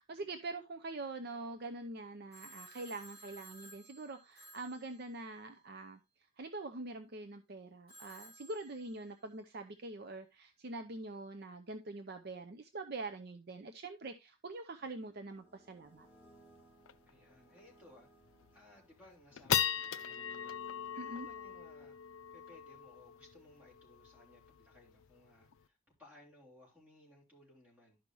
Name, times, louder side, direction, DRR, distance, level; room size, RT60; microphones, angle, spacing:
voice 1, 0.0-6.0 6.4-16.1 21.0-21.3, right 2 dB, 50° right, 0.6 m, -44 dB
Telephone, 2.3-5.6 7.9-9.4, right 1 dB, 30° right, 3.1 m, -57 dB
sound 1, 14.8-19.4, right 2 dB, 10° left, 2.5 m, -65 dB
sound 2, 16.0-16.1 16.4-16.5 16.9-17.1 17.6-17.7 18.2-18.6 19.0-25.6, left 10 dB, 75° left, 0.5 m, -39 dB
voice 2, 17.1-18.1 18.5-20.6 20.9-22.0 22.3-28.0, left 1 dB, 10° right, 3.3 m, -61 dB
12.0 x 5.4 x 3.0 m
head